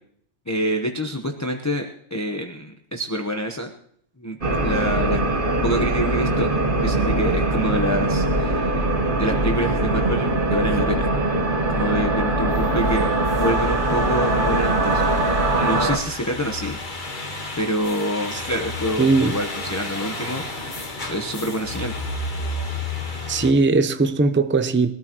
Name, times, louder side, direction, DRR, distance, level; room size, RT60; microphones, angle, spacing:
voice 1, 0.5-3.7 4.2-5.2 5.6-6.5 6.8-8.9 9.2-11.1 11.7-13.1 13.3-15.0 15.6-16.8 17.6-20.8 21.1-21.9, equal, 15° left, 0.9 m, -26 dB
sound 1, 4.4-16.0, right 2 dB, 45° right, 1.5 m, -21 dB
sound 2, 12.5-23.5, left 2 dB, 40° left, 1.6 m, -32 dB
voice 2, 19.0-19.4 22.9-24.9, right 3 dB, 15° right, 0.5 m, -20 dB
22.0 x 13.5 x 3.0 m
omnidirectional pair, 1.3 m